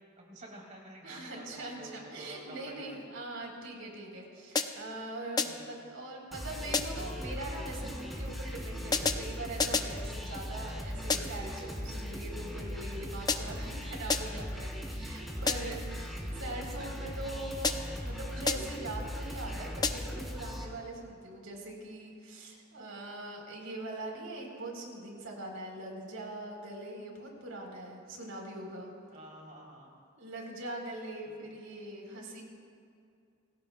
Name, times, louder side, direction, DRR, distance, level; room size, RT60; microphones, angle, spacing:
voice 1, 0.2-3.0 5.4-5.7 10.3-10.6 15.3-15.8 29.1-29.9 31.3-31.4, right 1 dB, 40° right, -2 dB, 3.6 m, -50 dB
voice 2, 1.0-28.9 30.2-32.4, right 2 dB, 85° right, 0 dB, 4.1 m, -42 dB
sound 1, 4.6-5.0 5.4-5.8 6.7-7.2 8.9-10.0 11.1-11.5 13.3-13.7 14.1-14.5 15.5-15.9 17.6-18.1 18.5-18.9 19.8-20.3, left 4 dB, 20° left, 0.6 m, -32 dB
sound 2, 6.3-20.6, equal, ahead, 2.9 m, -39 dB
28.0 x 20.0 x 2.3 m, 2.4 s
head